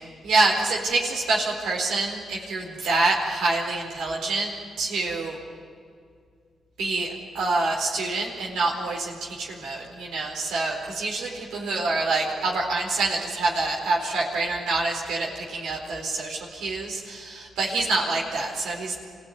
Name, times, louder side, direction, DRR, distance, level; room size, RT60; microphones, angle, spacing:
voice 1, 0.0-4.5 4.8-5.4 6.8-19.0, right 3 dB, 85° right, -3 dB, 4.4 m, -26 dB
26.0 x 16.5 x 9.5 m, 2.2 s
cardioid pair, 65°, 0 cm